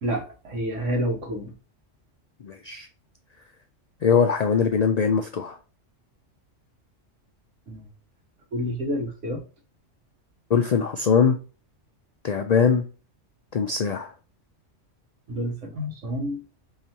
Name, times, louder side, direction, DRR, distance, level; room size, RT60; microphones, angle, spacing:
voice 1, 0.0-1.5 7.7-7.8 8.5-9.4 15.3-16.4, equal, 80° right, 1.5 m, -29 dB
voice 2, 2.4-2.9 4.0-5.6 10.5-11.4 12.2-12.9 13.5-14.1, left 6 dB, 90° left, 0.3 m, -21 dB
4.8 x 2.8 x 2.7 m
omnidirectional pair, 1.3 m